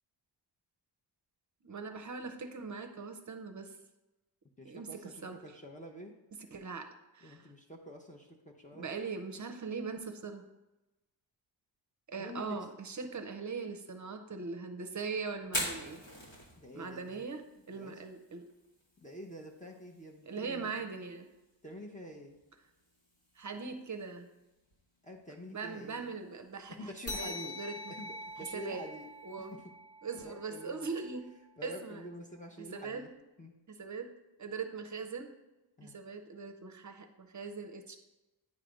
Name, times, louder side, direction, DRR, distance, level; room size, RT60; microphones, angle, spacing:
voice 1, 1.6-3.8 4.6-5.4 6.5-6.9 7.1-7.5 8.7-10.4 12.1-16.0 16.7-18.5 20.3-21.3 23.4-24.3 25.5-26.9 27.2-27.8 28.5-28.8 29.2-29.5 30.0-31.3 31.6-32.0 32.7-33.0 33.7-34.1 34.4-35.3 35.8-38.0, right 4 dB, 40° right, 7 dB, 0.6 m, -40 dB
voice 2, 4.6-6.2 7.2-9.1 12.2-12.6 16.6-17.3 17.7-18.0 19.0-20.9 21.6-22.4 25.0-26.1 26.7-27.6 27.9-29.1 29.4-29.7 30.1-30.9 31.6-33.1 33.4-33.5 35.8-36.0, equal, 15° left, 1 dB, 0.7 m, -47 dB
Fire, 15.4-29.3, equal, 70° left, 2.0 m, -47 dB
sound 1, 27.1-32.0, left 2 dB, 35° left, 1.0 m, -45 dB
9.5 x 3.3 x 5.0 m, 1.0 s
wide cardioid pair, 135°, 46 cm